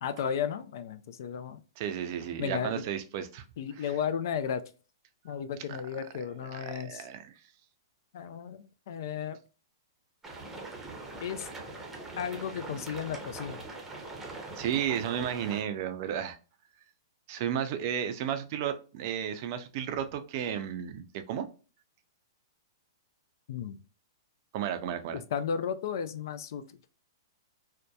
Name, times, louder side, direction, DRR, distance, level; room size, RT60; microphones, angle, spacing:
voice 1, 0.0-1.6 2.4-2.8 3.6-4.6 5.2-7.1 8.1-9.4 11.2-11.5 12.2-13.6 23.5-23.8 25.1-26.6, left 7 dB, 60° left, 12 dB, 0.3 m, -34 dB
voice 2, 1.8-3.4 3.8-3.9 6.5-7.3 14.5-16.4 17.3-21.5 24.5-25.2, right 9 dB, 50° right, 9 dB, 0.4 m, -33 dB
sound 1, 10.2-15.6, right 2 dB, 10° right, 0.7 m, -42 dB
2.7 x 2.1 x 2.2 m, 0.35 s
hypercardioid pair, 120°, 2 cm